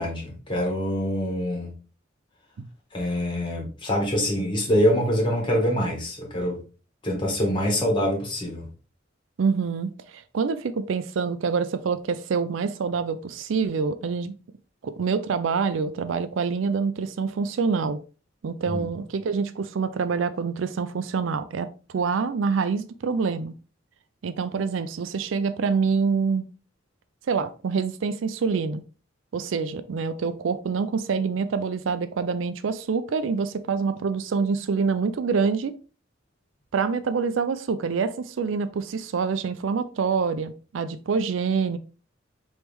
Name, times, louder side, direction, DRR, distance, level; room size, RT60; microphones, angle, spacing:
voice 1, 0.0-1.7 2.9-6.6 7.0-8.7 18.7-18.8, equal, 25° left, 1.6 m, -25 dB
voice 2, 9.4-14.3 14.8-18.0 18.4-23.5 24.2-26.4 27.3-28.8 29.3-35.8 36.7-41.8, right 5 dB, 75° right, 0.4 m, -26 dB
4.6 x 3.1 x 3.4 m
head